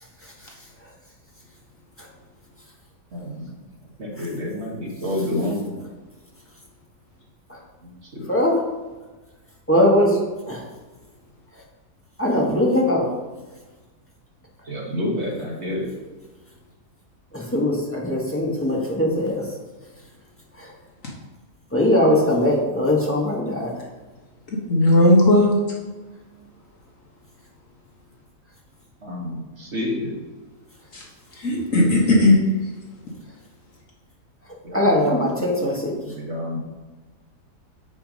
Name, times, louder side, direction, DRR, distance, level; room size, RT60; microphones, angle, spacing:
voice 1, 3.1-3.5 4.0-5.8 8.1-8.3 14.7-15.9 29.0-30.1 34.6-35.2 36.0-36.6, left 1 dB, 45° right, -2 dB, 1.7 m, -28 dB
voice 2, 8.3-8.6 9.7-10.2 10.5-10.6 12.2-13.1 17.3-19.4 20.6-20.7 21.7-23.7 34.7-35.9, left 1 dB, 10° left, -3 dB, 1.4 m, -20 dB
voice 3, 24.7-25.6 30.9-31.0 31.4-32.4, left 1 dB, 55° left, -2 dB, 1.8 m, -16 dB
7.1 x 6.0 x 5.2 m, 1.2 s
omnidirectional pair, 1.7 m